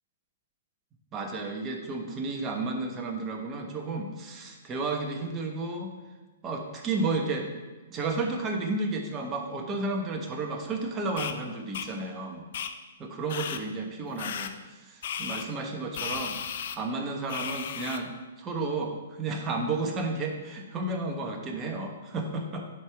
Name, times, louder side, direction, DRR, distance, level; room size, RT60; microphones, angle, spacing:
voice 1, 1.1-5.9 6.4-7.5 7.9-12.4 13.0-14.5 14.9-16.3 16.8-18.1 18.4-22.6, right 3 dB, 25° right, 2 dB, 1.2 m, -32 dB
sound 1, 11.2-11.3 11.7-11.9 12.5-12.7 13.3-13.6 14.2-14.5 15.0-15.5 15.9-16.8 17.3-18.0, left 8 dB, 60° left, 0.5 m, -34 dB
10.5 x 4.7 x 3.5 m, 1.2 s
hypercardioid pair, 125°, 0 cm